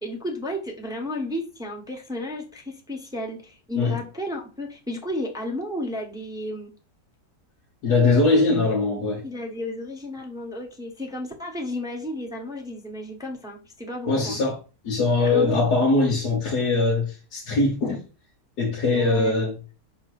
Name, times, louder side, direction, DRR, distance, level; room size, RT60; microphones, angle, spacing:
voice 1, 0.0-6.7 9.2-14.4 15.2-15.6 18.9-19.4, left 1 dB, 5° right, 1.1 m, -33 dB
voice 2, 7.8-9.2 14.1-14.5 14.8-18.0 18.6-19.5, left 3 dB, 85° left, 1.8 m, -21 dB
6.4 x 3.7 x 5.9 m
omnidirectional pair, 1.7 m